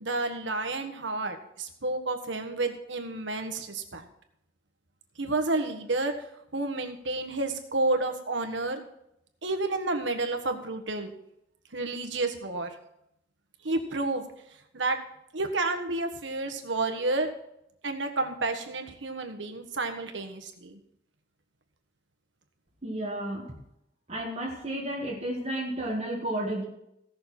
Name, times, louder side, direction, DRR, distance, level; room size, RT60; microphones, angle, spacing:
voice 1, 0.0-4.0 5.2-6.1 6.5-8.8 9.4-11.1 11.7-12.7 13.6-14.3 14.7-15.0 15.3-17.3 17.8-20.8, right 2 dB, 80° right, 6 dB, 1.5 m, -30 dB
voice 2, 22.8-23.5 24.1-26.6, right 1 dB, 35° right, -3 dB, 1.9 m, -32 dB
17.0 x 6.6 x 4.3 m, 0.79 s
head